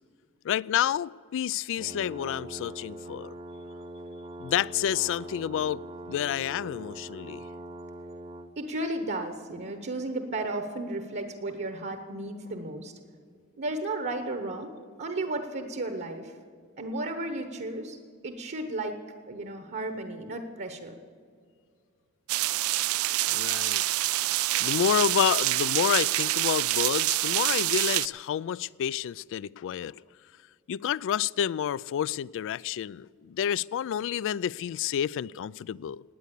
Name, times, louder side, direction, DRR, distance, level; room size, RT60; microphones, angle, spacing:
voice 1, 0.4-3.3 4.4-7.4 23.3-23.8 24.6-30.0 30.7-36.0, left 9 dB, 60° left, 0.3 m, -29 dB
sound 1, 1.8-8.5, right 1 dB, 30° right, 0.9 m, -42 dB
voice 2, 8.6-12.9 13.6-16.3 16.8-19.0 19.3-21.0, right 2 dB, 50° right, 1.1 m, -34 dB
sound 2, 22.3-28.1, right 17 dB, 70° right, 0.4 m, -26 dB
17.5 x 9.5 x 8.2 m
head